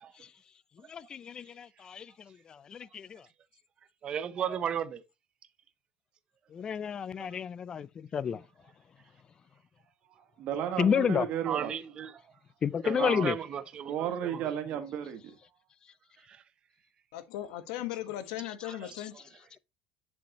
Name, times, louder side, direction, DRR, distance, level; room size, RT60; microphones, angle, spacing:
voice 1, 0.9-2.1 2.7-3.2 6.5-8.4 10.8-11.2 12.6-13.4, left 7 dB, 25° left, 0.4 m, -30 dB
voice 2, 4.0-5.0 7.2-7.3 11.5-12.1 12.8-14.4 16.3-16.4, right 8 dB, 35° right, 0.8 m, -35 dB
voice 3, 10.2-11.7 12.9-13.3 13.8-15.2, right 9 dB, 55° right, 1.7 m, -33 dB
voice 4, 17.1-19.1, left 13 dB, 85° left, 1.5 m, -37 dB
7.9 x 7.1 x 3.0 m
cardioid pair, 145°, 3 cm